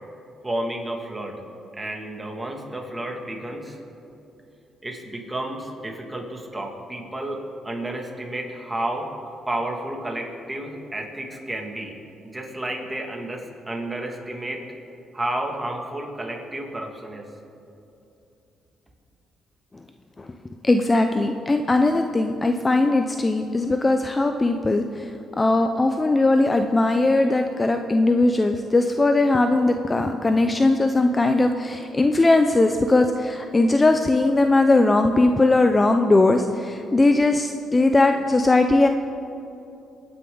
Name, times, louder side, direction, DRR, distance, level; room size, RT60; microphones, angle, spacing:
voice 1, 0.4-1.4 1.7-3.8 4.8-9.1 9.5-11.9 12.2-14.6 15.1-17.2, right 1 dB, 15° right, 1 dB, 2.3 m, -31 dB
voice 2, 20.6-38.9, left 2 dB, 20° left, 6 dB, 0.6 m, -19 dB
23.0 x 9.5 x 3.9 m, 2.8 s
cardioid pair, 90°, 0 cm